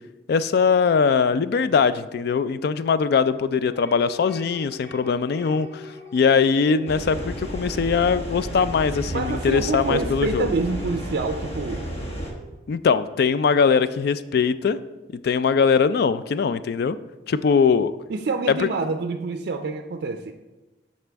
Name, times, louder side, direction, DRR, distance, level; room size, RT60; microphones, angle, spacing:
voice 1, 0.3-5.8 6.1-10.5 12.7-14.8 15.2-17.0 17.3-18.0 18.5-18.7, left 5 dB, 60° left, 14 dB, 0.3 m, -21 dB
sound 1, 3.7-8.4 8.7-11.5, left 3 dB, 15° left, 0.8 m, -45 dB
sound 2, 6.9-12.3, right 1 dB, 35° left, 1.2 m, -32 dB
voice 2, 9.1-11.9 18.1-20.3, right 3 dB, 60° right, 6 dB, 0.4 m, -27 dB
12.5 x 4.3 x 3.4 m, 1.1 s
head